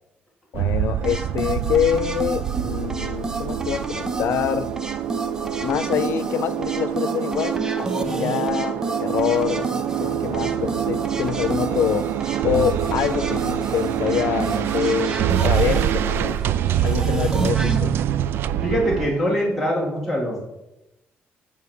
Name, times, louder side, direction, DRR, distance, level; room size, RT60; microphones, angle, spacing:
voice 1, 0.5-4.7 5.6-12.1 12.4-16.4 16.8-18.0, left 9 dB, 90° left, 15 dB, 0.7 m, -25 dB
sound 1, 0.5-19.1, right 10 dB, 80° right, 0.4 m, -25 dB
sound 2, 1.0-17.8, right 2 dB, 15° right, 0.8 m, -31 dB
voice 2, 18.6-20.4, equal, ahead, -5 dB, 2.3 m, -23 dB
9.5 x 7.4 x 6.6 m, 0.92 s
cardioid pair, 165°, 4 cm